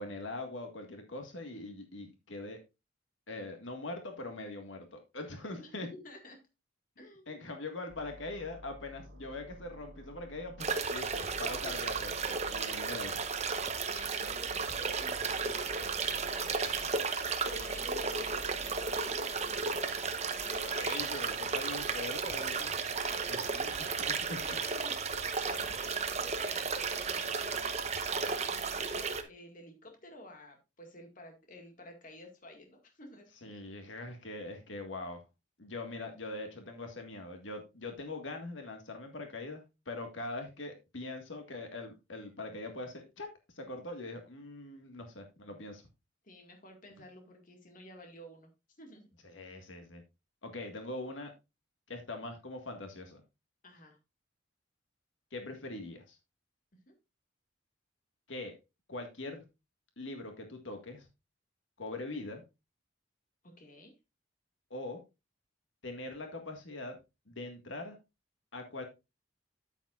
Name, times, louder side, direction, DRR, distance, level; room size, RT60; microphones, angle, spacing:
voice 1, 0.0-2.6 3.3-5.9 7.3-13.2 20.6-22.8 23.3-24.4 33.4-35.2 35.6-43.3 43.6-45.8 49.3-50.0 50.4-51.3 51.9-53.2 55.3-56.2 58.3-58.5 58.9-59.4 60.0-61.1 61.8-62.4 64.7-65.0 65.8-67.0 67.3-68.0 68.5-68.8, left 2 dB, 80° left, 4 dB, 1.8 m, -42 dB
voice 2, 5.6-6.4 7.0-7.5 13.9-17.0 17.5-20.9 23.1-24.1 24.4-25.0 25.4-33.7 46.2-48.5 48.8-49.1 53.6-54.0 56.9-57.0 63.4-63.9, left 1 dB, 45° left, 3 dB, 2.0 m, -52 dB
sound 1, 7.9-10.8 11.1-13.9 14.2-16.9 17.4-20.0, equal, 80° right, 1.4 m, -52 dB
sound 2, 10.6-29.2, right 5 dB, 35° right, 0.9 m, -34 dB
9.2 x 8.9 x 2.5 m, 0.25 s
head